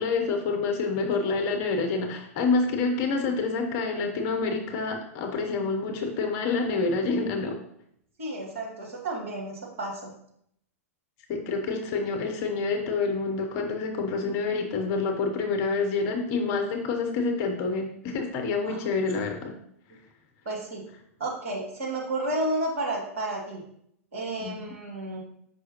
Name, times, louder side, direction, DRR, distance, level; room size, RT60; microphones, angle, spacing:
voice 1, 0.0-7.6 11.3-19.5 24.4-24.6, left 4 dB, 40° left, 4 dB, 0.8 m, -27 dB
voice 2, 8.2-10.1 18.7-18.9 20.5-20.8 21.2-23.6 24.1-25.2, right 2 dB, 60° right, -3 dB, 2.0 m, -31 dB
6.2 x 5.2 x 2.9 m, 0.71 s
figure-of-eight pair, 100°, 8 cm